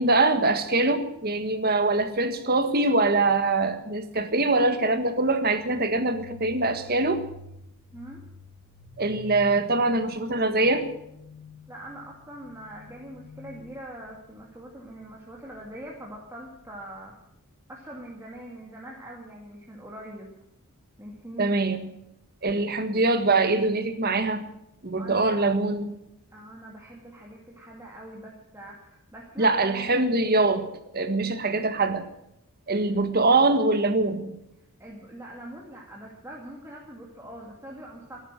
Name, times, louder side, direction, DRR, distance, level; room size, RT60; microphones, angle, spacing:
voice 1, 0.0-7.2 9.0-10.8 21.4-21.9 22.4-24.5 24.8-25.9 29.4-30.6 30.9-32.0 32.7-34.4, right 2 dB, 45° right, 9 dB, 1.5 m, -23 dB
sound 1, 5.4-17.0, left 3 dB, 55° left, 1.2 m, -49 dB
voice 2, 7.9-8.2 11.7-17.2 17.7-20.3 21.0-21.7 25.0-25.4 26.3-30.1 32.9-33.0 34.8-38.2, right 1 dB, 10° right, -3 dB, 2.2 m, -43 dB
13.5 x 12.0 x 8.9 m, 0.81 s
head